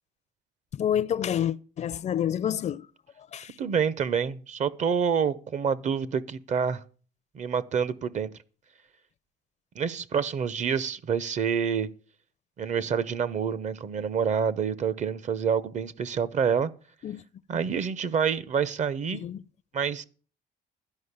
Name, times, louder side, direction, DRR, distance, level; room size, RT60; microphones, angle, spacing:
voice 1, 0.7-2.9 3.3-3.5 17.0-17.2 19.2-19.4, left 9 dB, 45° left, 0.5 m, -28 dB
voice 2, 3.6-6.8 7.3-8.3 9.8-11.9 12.6-16.7 17.5-19.2 19.7-20.0, right 7 dB, 45° right, 0.8 m, -27 dB
12.0 x 5.3 x 8.0 m
cardioid pair, 110°, 17 cm